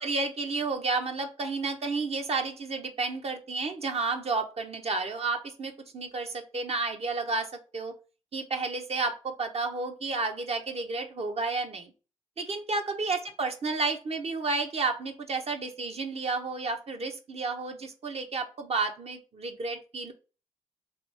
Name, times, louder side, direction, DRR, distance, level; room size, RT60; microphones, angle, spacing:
voice 1, 0.0-7.9 8.3-11.9 12.4-20.1, right 3 dB, 50° right, 5 dB, 0.7 m, -31 dB
2.9 x 2.5 x 3.3 m, 0.34 s
supercardioid pair, 45°, 13 cm